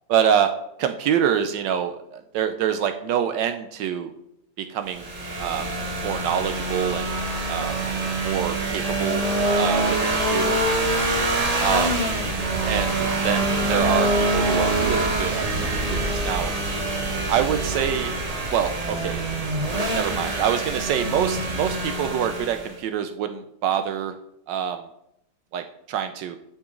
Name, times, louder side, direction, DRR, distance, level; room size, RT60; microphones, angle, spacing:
voice 1, 0.1-0.5 0.8-4.1 4.6-5.1 5.4-5.7 6.0-7.1 7.5-7.8 8.2-9.2 9.6-10.6 11.6-12.0 12.7-15.5 15.8-16.5 17.3-18.1 18.5-19.2 19.9-24.1 24.5-24.8 25.5-26.4, right 9 dB, 75° right, 8 dB, 1.2 m, -25 dB
sound 1, 4.9-22.8, right 2 dB, 35° right, 0.6 m, -25 dB
9.8 x 5.9 x 3.7 m, 0.81 s
omnidirectional pair, 2.1 m